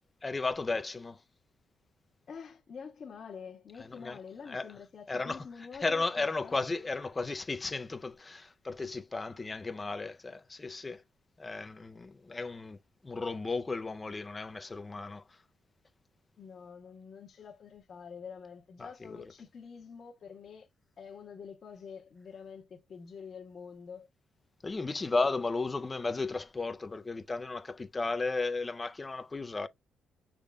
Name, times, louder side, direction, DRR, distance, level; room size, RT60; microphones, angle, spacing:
voice 1, 0.2-1.2 3.8-4.2 4.5-4.7 5.1-11.0 11.4-12.8 13.0-15.4 18.8-19.3 24.6-29.7, left 3 dB, 20° left, 0.4 m, -34 dB
voice 2, 2.3-6.5 16.4-20.7 21.0-24.1, left 6 dB, 45° left, 0.9 m, -47 dB
6.4 x 3.5 x 2.3 m
cardioid pair, 135°, 0 cm